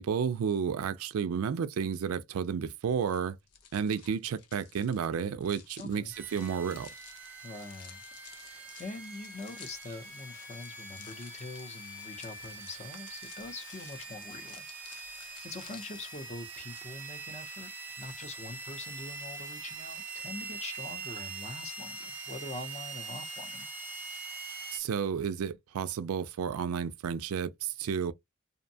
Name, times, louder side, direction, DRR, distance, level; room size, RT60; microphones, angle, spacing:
voice 1, 0.0-3.4 3.7-6.9 24.7-28.1, right 7 dB, 65° right, 0.4 m, -32 dB
sound 1, 3.0-16.8, left 8 dB, 90° left, 0.6 m, -54 dB
voice 2, 5.8-6.1 7.4-14.6 14.9-17.7 18.0-23.7, left 2 dB, 30° left, 0.6 m, -44 dB
sound 2, 6.1-24.8, right 3 dB, 10° right, 0.8 m, -43 dB
2.6 x 2.1 x 2.6 m
head